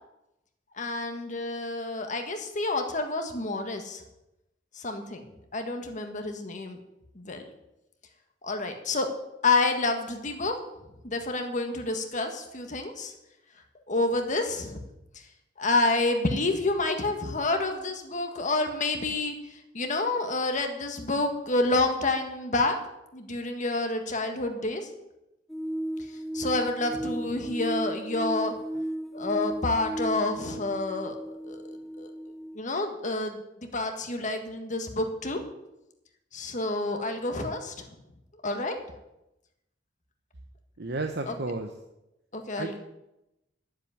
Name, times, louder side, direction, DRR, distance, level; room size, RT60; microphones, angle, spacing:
voice 1, 0.7-4.0 4.7-5.2 5.5-6.8 7.1-7.4 8.4-9.1 9.4-10.6 11.0-13.1 13.9-14.8 15.6-22.8 23.1-24.9 26.3-28.5 29.1-31.2 31.4-31.6 32.0-32.1 32.5-35.4 36.3-37.9 38.4-38.8 41.3-41.4 42.3-42.8, left 2 dB, 45° left, 5 dB, 1.5 m, -28 dB
sound 1, 25.5-32.6, right 1 dB, ahead, 0.6 m, -35 dB
voice 2, 40.8-41.7 42.6-42.8, right 2 dB, 65° right, 5 dB, 1.0 m, -32 dB
10.0 x 7.7 x 9.5 m, 0.91 s
head